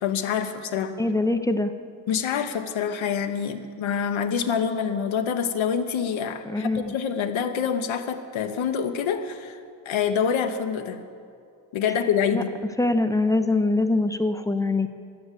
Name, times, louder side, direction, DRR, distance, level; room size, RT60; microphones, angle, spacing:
voice 1, 0.0-1.0 2.1-9.6 9.9-11.0 11.7-12.5, left 7 dB, 75° left, 6 dB, 1.0 m, -26 dB
voice 2, 1.0-1.7 6.5-6.9 12.3-12.4 12.8-14.9, left 2 dB, 5° left, 8 dB, 0.6 m, -23 dB
11.5 x 9.5 x 8.1 m, 2.3 s
cardioid pair, 90°, 48 cm